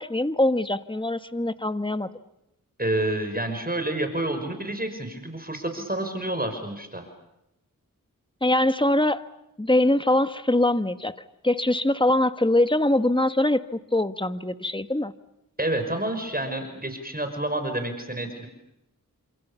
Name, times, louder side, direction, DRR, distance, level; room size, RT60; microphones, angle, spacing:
voice 1, 0.0-2.1 8.4-9.3 9.6-11.2 11.4-15.1, left 1 dB, 15° left, 10 dB, 1.6 m, -23 dB
voice 2, 2.8-7.1 15.6-18.5, right 1 dB, 25° right, 6 dB, 5.6 m, -29 dB
29.5 x 27.5 x 7.1 m, 0.88 s
wide cardioid pair, 40°, 34 cm